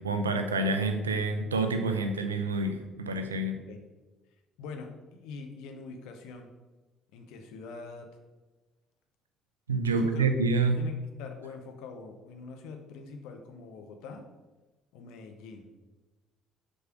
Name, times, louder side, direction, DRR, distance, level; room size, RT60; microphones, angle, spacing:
voice 1, 0.0-3.6 9.7-10.8, right 3 dB, 85° right, 6 dB, 0.7 m, -28 dB
voice 2, 4.6-6.5 7.1-8.2 9.9-10.3 10.8-14.3 14.9-15.7, left 4 dB, 65° left, 5 dB, 1.0 m, -44 dB
6.3 x 5.5 x 5.9 m, 1.2 s
figure-of-eight pair, 50°, 0 cm